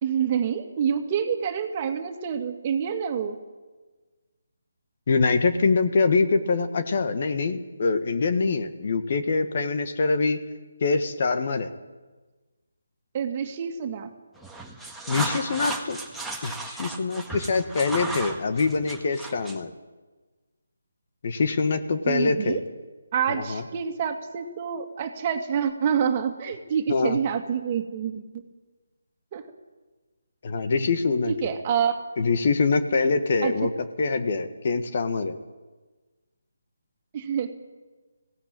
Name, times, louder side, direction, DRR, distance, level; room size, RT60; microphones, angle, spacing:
voice 1, 0.0-3.4 13.1-14.1 22.1-22.6 23.1-28.4 29.3-29.4 31.3-32.0 33.4-33.7 37.1-37.5, right 7 dB, 30° right, 5 dB, 2.1 m, -27 dB
voice 2, 5.1-10.4 10.8-11.7 15.1-16.0 16.4-19.7 21.2-22.6 23.3-23.6 26.9-27.2 30.4-31.3 32.2-33.7 34.0-35.4, left 4 dB, 45° left, 9 dB, 1.5 m, -24 dB
sound 1, 14.4-19.7, right 2 dB, ahead, 1.6 m, -35 dB
20.0 x 16.5 x 9.0 m, 1.3 s
figure-of-eight pair, 150°, 0 cm